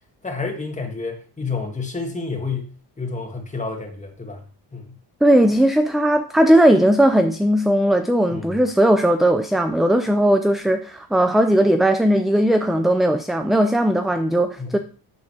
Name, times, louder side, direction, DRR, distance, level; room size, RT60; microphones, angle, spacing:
voice 1, 0.2-4.4 4.7-5.0 8.3-8.6 14.6-14.8, left 4 dB, 15° left, 2.1 m, -30 dB
voice 2, 5.2-14.8, right 1 dB, ahead, 0.4 m, -17 dB
9.5 x 3.9 x 6.6 m
cardioid pair, 125°, 45 cm